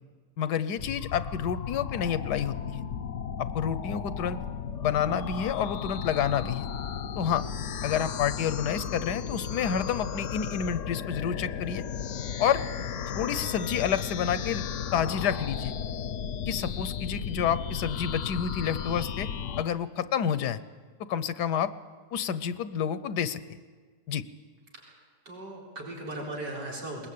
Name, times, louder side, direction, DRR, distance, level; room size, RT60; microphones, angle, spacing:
voice 1, 0.4-2.8 3.4-4.4 4.8-6.7 7.2-7.5 7.8-11.8 12.4-12.6 13.1-14.6 14.9-15.7 16.5-19.3 19.6-20.6 21.1-21.7 22.1-23.6 24.1-24.2, left 8 dB, 80° left, 14 dB, 1.4 m, -29 dB
sound 1, 0.8-19.6, left 7 dB, 55° left, 1.0 m, -34 dB
voice 2, 24.7-27.1, right 1 dB, 90° right, -3 dB, 5.0 m, -38 dB
21.0 x 20.5 x 8.6 m, 1.6 s
omnidirectional pair, 1.8 m